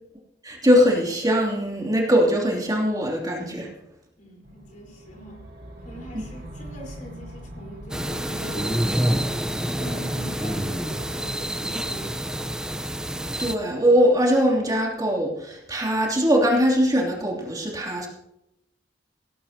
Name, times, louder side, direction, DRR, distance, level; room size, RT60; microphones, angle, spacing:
voice 1, 0.4-3.7 13.4-18.1, equal, 20° right, -2 dB, 3.0 m, -21 dB
voice 2, 4.2-5.5 5.8-9.4 9.8-12.5, equal, 45° left, -1 dB, 4.3 m, -42 dB
sound 1, 4.4-14.5, right 1 dB, 60° right, 2.4 m, -44 dB
sound 2, 7.9-13.5, equal, 5° right, 0.7 m, -27 dB
17.5 x 16.0 x 2.9 m, 0.84 s
head